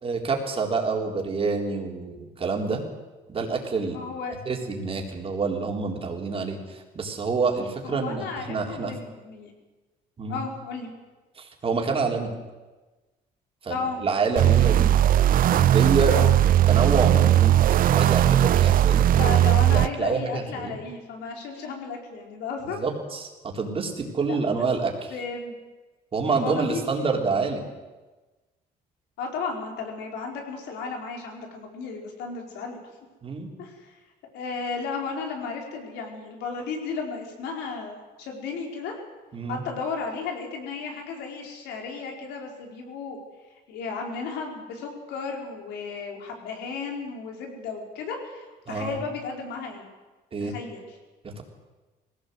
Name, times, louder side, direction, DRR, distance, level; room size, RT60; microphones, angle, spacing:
voice 1, 0.0-2.8 3.3-4.0 4.5-8.9 10.2-10.4 11.4-12.3 13.6-14.9 15.5-19.1 19.6-20.7 22.6-23.2 23.5-25.1 26.1-27.6 33.2-33.5 39.3-39.6 48.7-49.0 50.3-50.5 51.2-51.4, right 4 dB, 35° right, 1 dB, 3.9 m, -27 dB
voice 2, 3.9-4.4 7.8-9.5 10.3-10.9 13.7-14.0 16.0-16.3 19.2-22.8 24.2-24.6 25.1-25.5 26.3-27.1 29.2-32.8 33.6-34.0 34.3-38.9 39.5-43.2 43.7-49.9 50.4-51.0, left 4 dB, 85° left, 2 dB, 4.7 m, -34 dB
sound 1, 14.4-19.9, right 12 dB, 55° right, 0.7 m, -18 dB
20.0 x 17.0 x 8.1 m, 1.2 s
cardioid pair, 110°, 17 cm